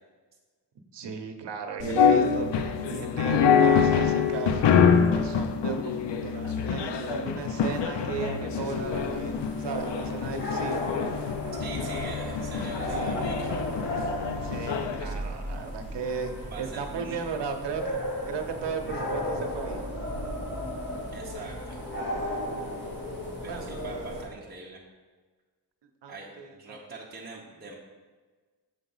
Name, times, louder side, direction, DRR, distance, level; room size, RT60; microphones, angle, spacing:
voice 1, 0.9-4.6 5.1-10.9 12.9-13.5 14.4-17.9 18.3-19.8 23.5-23.7 26.0-26.6, right 5 dB, 75° right, 6 dB, 0.8 m, -35 dB
sound 1, 1.8-15.1, left 6 dB, 80° left, 0.6 m, -25 dB
sound 2, 8.7-24.2, left 1 dB, 25° left, 1.7 m, -34 dB
voice 2, 11.6-13.5 16.5-17.2 21.1-21.8 23.4-24.8 26.1-27.7, right 2 dB, 25° right, -4 dB, 0.8 m, -43 dB
6.7 x 4.0 x 5.5 m, 1.4 s
wide cardioid pair, 180°, 42 cm